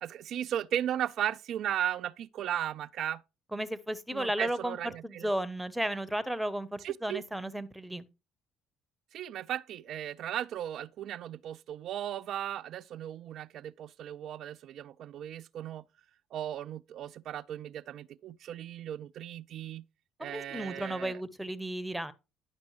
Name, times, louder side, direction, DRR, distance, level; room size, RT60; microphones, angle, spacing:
voice 1, 0.0-3.2 4.1-5.3 6.8-7.2 9.1-15.8 16.3-19.8 20.2-21.2, right 11 dB, 60° right, 0.3 m, -36 dB
voice 2, 3.5-8.0 20.2-22.1, right 1 dB, 5° right, 0.9 m, -34 dB
10.5 x 5.9 x 3.2 m
hypercardioid pair, 55°, 0 cm